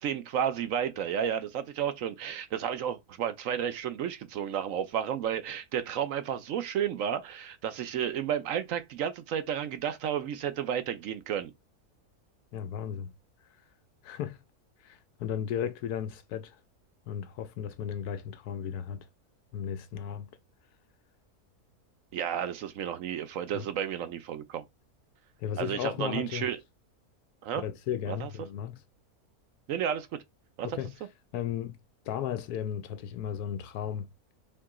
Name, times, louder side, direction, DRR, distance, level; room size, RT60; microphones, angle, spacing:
voice 1, 0.0-11.5 22.1-24.6 25.6-26.6 27.4-27.6 28.1-28.3 29.7-30.1 30.6-30.7, right 9 dB, 65° right, 0.9 m, -32 dB
voice 2, 12.5-13.1 13.4-13.6 14.0-14.4 14.8-16.6 17.1-19.1 19.5-20.3 23.5-23.7 25.4-26.5 27.5-28.8 30.6-30.9 31.3-31.8 32.0-34.1, left 9 dB, 80° left, 1.1 m, -35 dB
4.5 x 2.8 x 3.6 m
omnidirectional pair, 1.6 m